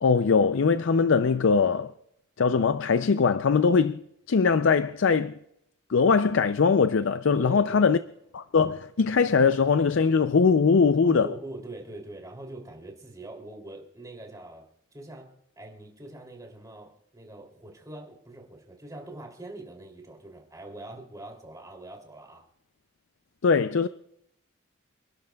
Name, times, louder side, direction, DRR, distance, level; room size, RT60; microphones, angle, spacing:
voice 1, 0.0-1.9 2.4-4.0 4.3-5.4 5.9-8.0 8.3-11.3 23.4-23.9, left 5 dB, 65° left, 0.4 m, -21 dB
voice 2, 7.3-7.9 11.0-22.4, right 1 dB, 15° right, 2.9 m, -43 dB
28.5 x 11.5 x 2.3 m
head